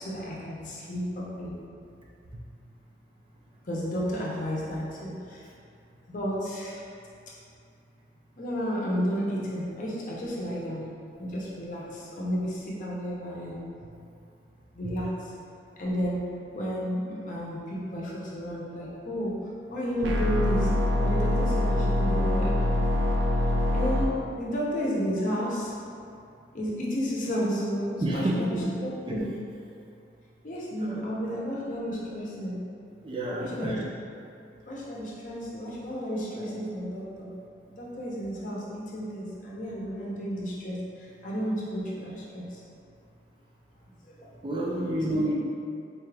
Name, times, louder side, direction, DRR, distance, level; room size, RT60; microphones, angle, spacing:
voice 1, 0.0-1.5 3.6-5.4 6.1-6.9 8.4-10.9 11.2-13.6 14.7-15.3 15.8-16.2 16.5-19.3 19.7-20.7 21.0-22.7 23.7-25.7 26.5-28.6 28.8-29.2 30.4-32.6 33.4-33.8 34.7-37.3 37.7-42.6 44.0-44.3 45.1-45.2, equal, 45° left, -5 dB, 0.7 m, -32 dB
sound 1, 20.0-24.0, left 1 dB, 90° right, 0.4 m, -24 dB
voice 2, 28.0-28.6 29.1-29.2 30.8-31.3 33.0-33.9 44.4-45.3, right 1 dB, 30° right, -3 dB, 0.4 m, -29 dB
4.1 x 2.4 x 3.3 m, 2.5 s
head